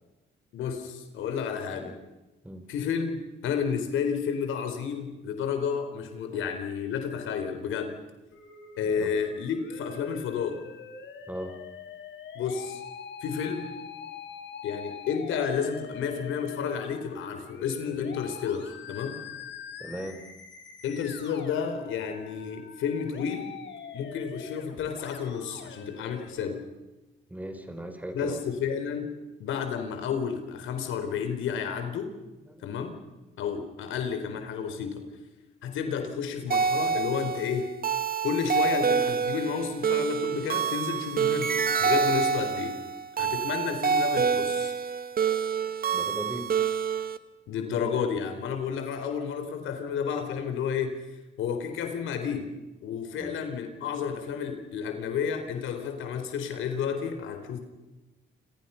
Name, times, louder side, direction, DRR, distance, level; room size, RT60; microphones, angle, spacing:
voice 1, 0.5-1.9 2.7-7.9 8.8-10.6 12.3-12.8 13.2-13.7 14.6-19.2 20.8-23.5 23.9-26.6 28.1-29.1 29.4-32.1 32.6-33.0 33.4-35.1 35.6-37.7 38.2-42.8 43.2-44.7 47.5-51.0 51.4-52.5 52.8-57.6, left 7 dB, 85° left, 7 dB, 4.1 m, -31 dB
Musical instrument, 8.3-26.3, left 6 dB, 65° left, 4.5 m, -44 dB
voice 2, 8.8-9.2 11.3-11.6 19.8-20.2 27.3-28.4 32.4-32.7 45.9-46.5 53.2-53.4, right 1 dB, 10° right, 7 dB, 4.3 m, -38 dB
sound 1, 36.5-47.2, right 6 dB, 50° right, 1.7 m, -27 dB
28.5 x 27.5 x 5.8 m, 1.0 s
cardioid pair, 90°, 20 cm